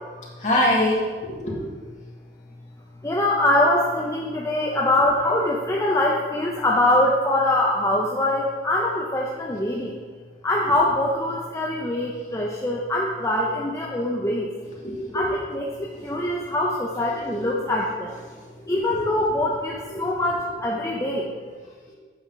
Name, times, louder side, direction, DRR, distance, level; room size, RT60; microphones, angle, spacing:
voice 1, 0.4-1.6 14.8-15.3 15.9-16.3 17.3-17.5 18.3-18.4 18.7-19.1 19.9-20.1, left 1 dB, 40° left, -5 dB, 2.0 m, -25 dB
voice 2, 3.0-9.9 10.4-14.5 15.1-18.2 18.7-21.3, left 1 dB, 15° left, -3 dB, 0.6 m, -23 dB
8.6 x 6.0 x 3.9 m, 1.5 s
head